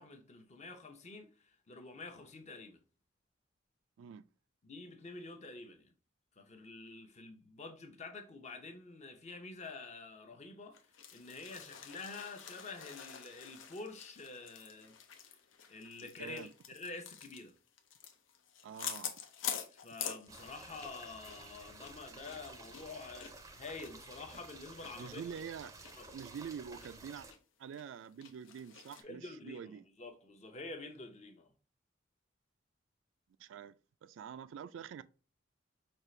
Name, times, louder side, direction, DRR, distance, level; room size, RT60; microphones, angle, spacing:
voice 1, 0.0-2.8 4.6-5.9 6.4-10.8 11.1-15.0 15.7-17.5 19.7-25.3 26.0-26.2 29.0-31.5, left 3 dB, 35° left, 0.7 m, -48 dB
sound 1, 10.7-21.0 21.2-21.4 21.8-24.9 25.3-25.4 25.8-25.9 26.3-26.9 27.3-27.4 27.7-29.0, left 8 dB, 85° left, 0.6 m, -46 dB
voice 2, 16.0-16.5 18.6-19.1 25.0-25.8 26.1-27.3 27.6-29.8 33.4-33.7 34.0-35.0, right 7 dB, 75° right, 0.3 m, -46 dB
sound 2, 20.3-27.3, right 3 dB, 15° right, 0.5 m, -53 dB
5.3 x 2.4 x 3.1 m
head